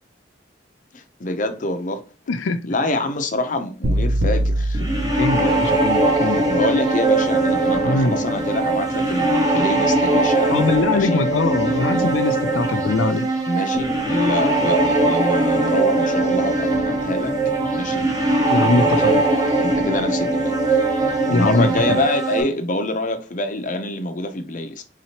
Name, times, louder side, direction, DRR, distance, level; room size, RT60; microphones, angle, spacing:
voice 1, 0.9-2.0 2.7-5.0 6.5-11.2 13.5-17.3 17.7-18.1 18.6-20.8 21.3-24.8, left 1 dB, 40° left, 0.6 m, -26 dB
voice 2, 2.3-2.6 5.2-6.6 7.8-8.2 10.5-13.3 18.5-19.2 21.3-22.0, left 3 dB, 90° left, 0.5 m, -22 dB
sound 1, 3.8-6.1, right 1 dB, 65° right, 0.5 m, -23 dB
sound 2, 4.7-22.4, right 2 dB, 20° right, 0.8 m, -20 dB
4.1 x 2.8 x 2.9 m
head